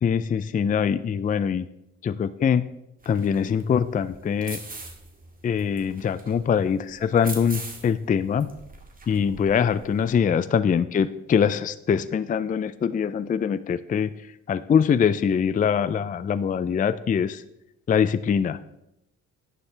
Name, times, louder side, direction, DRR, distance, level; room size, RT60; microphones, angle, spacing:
voice 1, 0.0-1.7 2.0-2.6 3.1-4.6 5.4-8.5 9.1-14.1 14.5-17.4 17.9-18.6, left 7 dB, 30° left, 14 dB, 0.4 m, -23 dB
sound 1, 3.0-10.2, right 3 dB, 30° right, 1.9 m, -42 dB
11.0 x 9.6 x 3.3 m, 0.83 s
cardioid pair, 90°, 30 cm